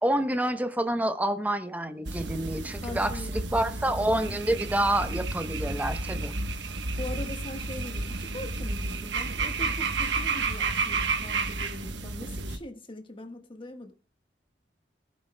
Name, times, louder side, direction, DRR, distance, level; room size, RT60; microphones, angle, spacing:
voice 1, 0.0-6.4, right 1 dB, 10° right, 0.8 m, -28 dB
sound 1, 2.0-12.6, right 3 dB, 85° right, 1.1 m, -31 dB
voice 2, 2.8-4.4 7.0-13.9, left 1 dB, 30° left, 1.4 m, -42 dB
20.0 x 11.5 x 2.2 m
head